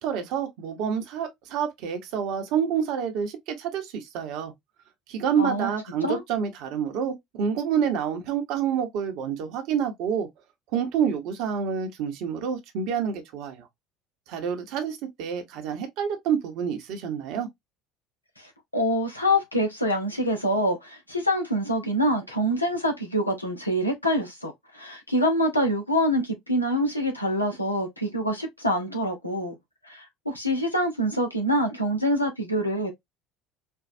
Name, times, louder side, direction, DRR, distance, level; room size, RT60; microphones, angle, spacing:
voice 1, 0.0-4.5 5.1-10.3 10.7-13.7 14.3-17.5, right 7 dB, 55° right, 1.0 m, -28 dB
voice 2, 5.4-5.7 6.0-6.2 18.4-29.6 29.9-32.9, equal, 90° left, 0.8 m, -25 dB
4.5 x 2.4 x 2.5 m
figure-of-eight pair, 65°, 0 cm